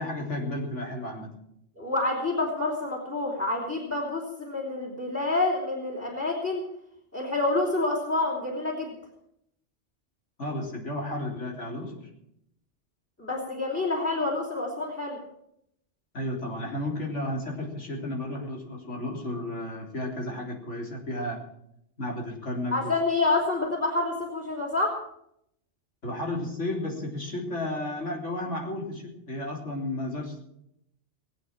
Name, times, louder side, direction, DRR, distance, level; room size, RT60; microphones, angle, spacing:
voice 1, 0.0-1.3 10.4-12.1 16.1-21.4 22.0-22.9 26.0-30.4, left 1 dB, 85° left, 0 dB, 3.9 m, -33 dB
voice 2, 1.8-6.6 7.1-8.9 13.2-15.2 22.7-25.0, left 2 dB, 10° left, -1 dB, 3.3 m, -28 dB
20.5 x 8.5 x 7.3 m, 0.77 s
omnidirectional pair, 1.2 m